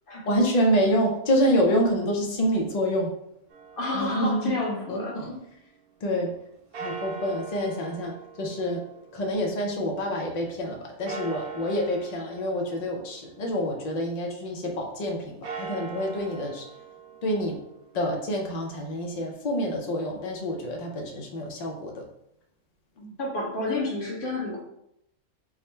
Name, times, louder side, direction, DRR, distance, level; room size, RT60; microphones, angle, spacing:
voice 1, 0.3-3.1 3.9-4.6 4.9-5.4 6.0-6.3 6.8-8.8 9.1-16.7 17.2-17.5 17.9-22.1, equal, 90° left, 1 dB, 0.3 m, -27 dB
sound 1, 3.5-5.6 6.7-10.1 11.1-14.0 15.3-19.3, right 5 dB, 75° right, 1.2 m, -42 dB
voice 2, 3.8-5.2 23.0-24.6, left 2 dB, 40° left, -3 dB, 1.0 m, -30 dB
3.6 x 2.1 x 4.2 m, 0.78 s
omnidirectional pair, 1.5 m